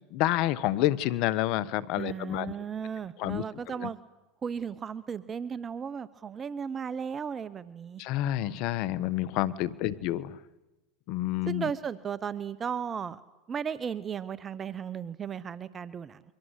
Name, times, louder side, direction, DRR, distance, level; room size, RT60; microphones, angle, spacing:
voice 1, 0.1-2.5 3.2-3.4 3.8-3.9 8.0-10.4 11.1-11.6, left 14 dB, 60° left, 19 dB, 1.2 m, -28 dB
voice 2, 2.0-4.0 4.4-8.0 9.9-10.2 11.5-13.2 13.5-16.2, right 7 dB, 30° right, 17 dB, 0.9 m, -35 dB
28.5 x 24.0 x 8.3 m, 1.1 s
hypercardioid pair, 100°, 0 cm